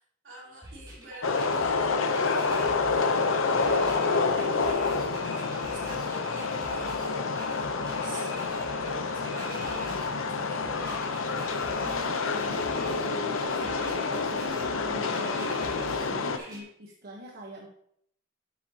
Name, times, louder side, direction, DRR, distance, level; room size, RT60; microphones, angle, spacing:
voice 1, 0.0-4.9 5.3-11.0, right 1 dB, 70° right, -5 dB, 3.3 m, -47 dB
sound 1, 0.6-16.6, right 1 dB, 20° right, 3.6 m, -45 dB
sound 2, 1.2-16.4, left 4 dB, 90° left, 0.7 m, -28 dB
voice 2, 11.8-17.7, equal, 50° right, -1 dB, 1.1 m, -43 dB
9.5 x 7.6 x 2.8 m, 0.69 s
head